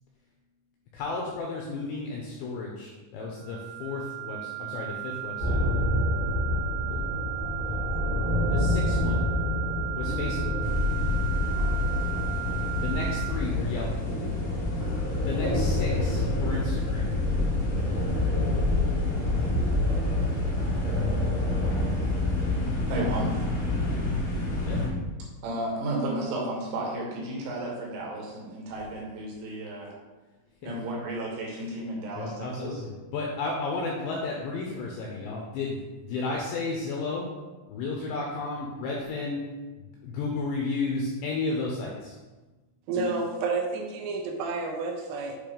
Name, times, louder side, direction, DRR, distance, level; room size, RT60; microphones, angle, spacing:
voice 1, 0.9-5.8 6.9-7.1 8.5-9.2 10.0-10.6 12.8-13.9 15.2-17.1 24.6-24.8 30.6-30.8 31.6-31.7 32.2-37.3 37.7-39.4 39.8-42.2, left 3 dB, 90° left, -1 dB, 2.5 m, -33 dB
sound 1, 3.3-13.3, right 22 dB, 70° left, 2.5 m, -36 dB
sound 2, 5.4-22.7, left 1 dB, 45° right, 1.7 m, -28 dB
sound 3, 10.6-24.9, left 2 dB, 55° left, 2.7 m, -30 dB
voice 2, 22.9-23.4 25.4-29.9 30.6-32.8 42.9-43.1, right 1 dB, 70° right, -3 dB, 3.3 m, -33 dB
voice 3, 42.9-45.4, right 3 dB, 85° right, 3 dB, 3.3 m, -30 dB
8.7 x 3.1 x 5.1 m, 1.2 s
omnidirectional pair, 6.0 m